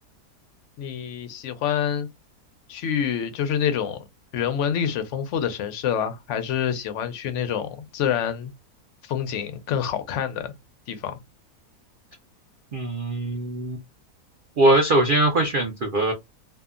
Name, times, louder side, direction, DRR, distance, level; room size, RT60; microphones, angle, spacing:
voice 1, 0.8-2.1 2.7-4.0 4.3-8.5 9.0-10.5 10.9-11.2, left 8 dB, 70° left, 0.7 m, -27 dB
voice 2, 12.7-13.8 14.6-16.1, right 1 dB, 80° right, 0.4 m, -21 dB
2.7 x 2.3 x 2.4 m
omnidirectional pair, 1.7 m